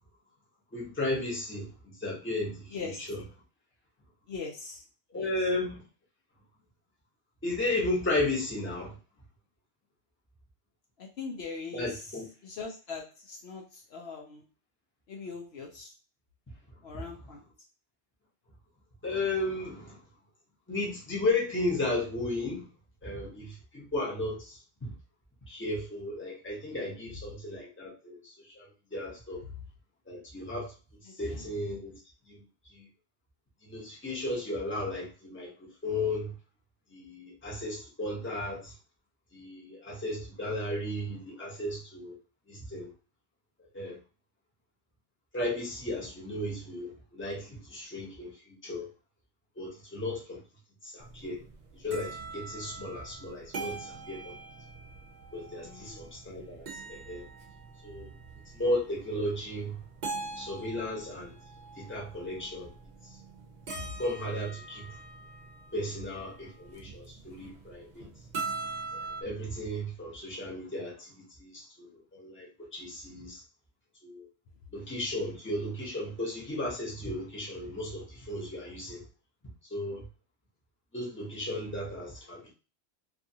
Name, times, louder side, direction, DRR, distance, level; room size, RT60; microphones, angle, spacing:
voice 1, 0.7-3.2 5.1-5.8 7.4-9.0 11.7-12.3 16.9-17.4 19.0-20.0 20.7-22.7 23.0-24.9 25.5-29.4 30.1-30.7 31.0-31.9 32.3-32.4 32.7-32.9 33.6-36.3 36.9-38.7 39.3-42.2 42.5-42.9 43.6-44.0 45.3-48.9 49.6-50.4 50.8-51.4 51.7-54.3 55.3-57.2 57.8-58.1 58.5-59.8 60.4-61.4 61.8-62.7 63.0-63.2 64.0-65.0 65.7-68.1 68.9-73.4 74.0-74.3 74.7-79.0 79.7-80.0 80.9-82.5, left 1 dB, 10° left, -4 dB, 0.8 m, -35 dB
voice 2, 4.3-4.8 5.2-5.3 11.0-11.9 12.4-14.4 15.1-15.9 16.8-17.4 31.3-31.4 55.6-56.0, left 4 dB, 65° left, 0 dB, 0.8 m, -41 dB
sound 1, 51.0-69.2, right 3 dB, 45° right, 0.6 m, -43 dB
2.6 x 2.5 x 2.7 m, 0.33 s
omnidirectional pair, 1.2 m